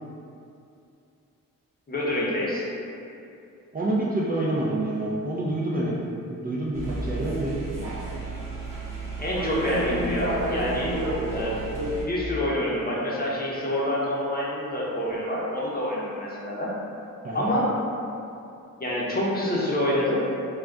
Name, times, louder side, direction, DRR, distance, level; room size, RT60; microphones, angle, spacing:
voice 1, 1.9-2.7 9.2-10.9 11.3-11.6 12.1-16.7 17.3-17.7 18.8-20.2, left 1 dB, 25° left, -6 dB, 0.7 m, -27 dB
voice 2, 3.7-5.9 6.2-7.6 17.2-17.5, right 1 dB, 25° right, -7 dB, 0.4 m, -27 dB
sound 1, 6.7-12.0, right 2 dB, 65° right, 0.8 m, -30 dB
2.3 x 2.2 x 3.6 m, 2.6 s
cardioid pair, 70°, 35 cm